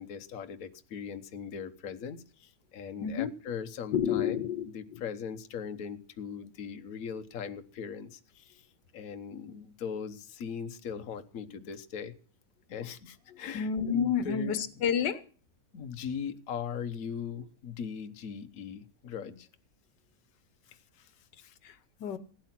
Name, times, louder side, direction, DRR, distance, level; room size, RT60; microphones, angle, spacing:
voice 1, 0.0-4.4 4.7-8.7 8.9-12.1 12.7-14.6 15.7-19.5 20.7-21.6, left 7 dB, 55° left, 1.4 m, -40 dB
voice 2, 3.0-3.3 3.9-5.0 13.5-15.2 21.6-22.2, left 8 dB, 80° left, 1.6 m, -30 dB
16.5 x 9.1 x 5.9 m
omnidirectional pair, 1.8 m